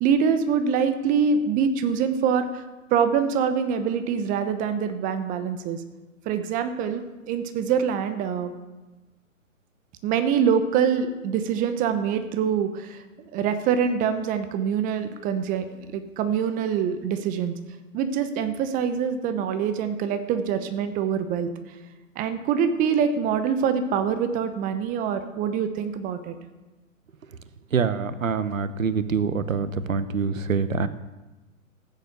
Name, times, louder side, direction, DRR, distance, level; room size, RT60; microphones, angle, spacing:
voice 1, 0.0-2.6 2.9-5.8 6.3-8.5 10.0-13.0 13.3-17.5 17.9-21.5 22.2-26.3, right 7 dB, 20° right, 10 dB, 0.9 m, -25 dB
voice 2, 27.7-30.9, right 5 dB, 75° right, 14 dB, 1.1 m, -25 dB
14.5 x 9.7 x 6.8 m, 1.1 s
figure-of-eight pair, 120°, 40 cm